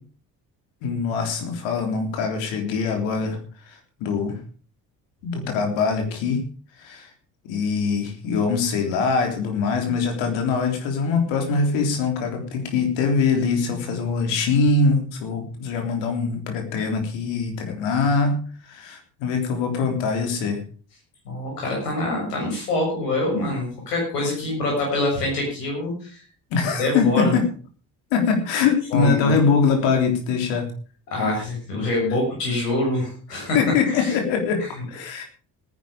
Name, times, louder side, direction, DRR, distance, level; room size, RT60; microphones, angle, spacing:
voice 1, 0.8-3.4 3.7-4.4 5.2-6.5 6.8-7.1 7.5-20.6 26.5-27.4 28.1-30.7 33.5-35.2, left 5 dB, 70° left, 5 dB, 3.6 m, -23 dB
voice 2, 21.3-26.2 26.8-27.3 28.9-29.4 31.1-33.6 34.0-34.1, left 2 dB, 85° left, 0 dB, 7.2 m, -25 dB
17.5 x 10.5 x 5.1 m, 0.41 s
hypercardioid pair, 50°, 46 cm